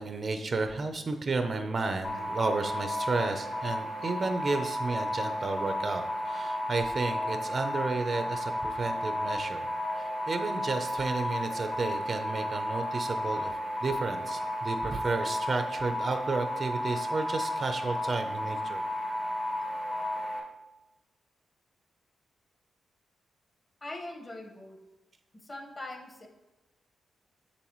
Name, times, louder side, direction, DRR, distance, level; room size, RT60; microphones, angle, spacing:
voice 1, 0.0-9.7 10.0-18.8, right 3 dB, 45° right, 7 dB, 0.7 m, -32 dB
sound 1, 2.0-20.4, left 1 dB, 55° left, 2.7 m, -33 dB
voice 2, 23.8-24.8 25.4-26.3, left 2 dB, 30° left, 2 dB, 1.4 m, -41 dB
7.4 x 7.1 x 3.1 m, 1.1 s
cardioid pair, 95°, 0 cm